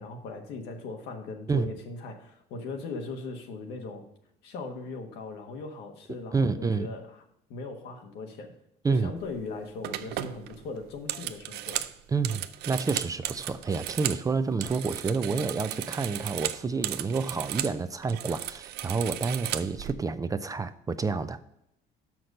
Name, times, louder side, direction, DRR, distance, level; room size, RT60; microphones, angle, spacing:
voice 1, 0.0-4.0 4.4-7.2 7.5-8.5 8.9-11.9, left 3 dB, 85° left, 1.4 m, -39 dB
voice 2, 6.1-6.9 8.8-9.1 12.1-21.4, right 4 dB, 20° right, 0.4 m, -29 dB
sound 1, 9.2-9.4 9.8-14.2 14.5-17.8 18.0-19.9, right 13 dB, 75° right, 0.5 m, -35 dB
6.4 x 5.9 x 5.3 m
cardioid pair, 110°, 17 cm